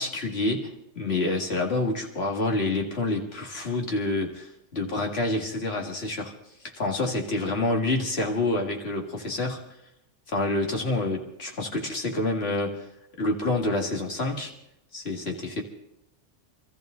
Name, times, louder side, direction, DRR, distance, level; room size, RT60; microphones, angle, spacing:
voice 1, 0.0-6.3 6.8-9.7 10.3-12.8 13.2-14.5 14.9-15.6, left 2 dB, 60° left, 1 dB, 2.3 m, -28 dB
26.0 x 14.0 x 3.8 m, 0.83 s
omnidirectional pair, 1.2 m